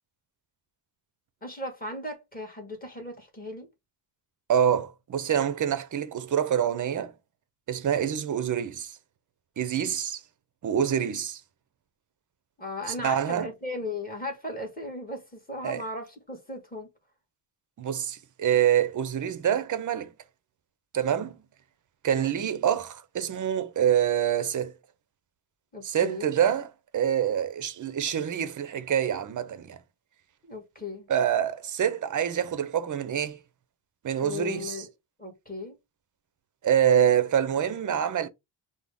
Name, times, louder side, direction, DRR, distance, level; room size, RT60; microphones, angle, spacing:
voice 1, 1.4-3.7 12.6-16.9 25.7-26.3 30.4-31.1 34.2-34.9 35.2-35.8, left 2 dB, 20° left, 1.4 m, -36 dB
voice 2, 4.5-7.1 7.7-8.9 9.6-10.2 10.6-11.4 12.9-13.5 15.6-15.8 17.8-20.1 20.9-21.4 22.0-24.7 25.8-26.7 26.9-29.8 31.1-33.4 34.0-34.8 36.6-38.3, right 9 dB, 40° right, 0.6 m, -26 dB
6.1 x 2.1 x 3.4 m
wide cardioid pair, 145°, 46 cm